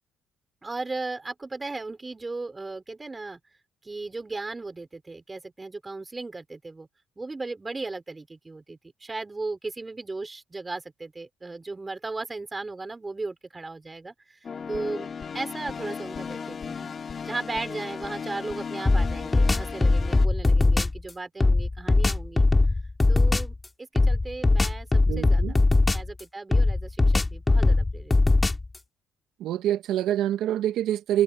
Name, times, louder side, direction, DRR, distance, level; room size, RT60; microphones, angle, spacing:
voice 1, 0.6-3.4 3.8-6.9 7.2-14.4 14.7-22.4 23.1-25.5 25.9-28.6, right 3 dB, 20° right, 5.4 m, -36 dB
sound 1, 14.4-20.3, left 6 dB, 40° left, 3.9 m, -36 dB
sound 2, 18.9-21.0 21.4-23.5 24.0-26.2 26.5-28.8, left 2 dB, 20° left, 3.1 m, -20 dB
voice 2, 25.1-25.6 29.4-31.2, right 12 dB, 80° right, 1.6 m, -26 dB
cardioid pair, 90°, 0 cm